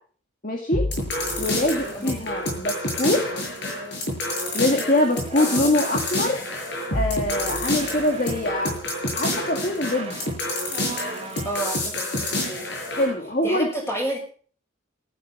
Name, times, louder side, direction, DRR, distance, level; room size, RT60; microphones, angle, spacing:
voice 1, 0.4-0.8 1.4-3.2 4.5-6.4 6.9-8.7 9.1-10.2 12.9-13.7, left 1 dB, 40° left, 2 dB, 2.2 m, -23 dB
sound 1, 0.7-13.1, left 1 dB, 60° left, 7.5 m, -28 dB
voice 2, 1.9-2.2 5.3-5.8 11.4-12.7 13.4-14.2, right 1 dB, 15° left, 1 dB, 6.7 m, -31 dB
sound 2, 4.4-6.3 7.3-9.1 9.7-11.9, right 3 dB, 30° right, 1.6 m, -40 dB
14.5 x 12.5 x 5.7 m, 0.43 s
head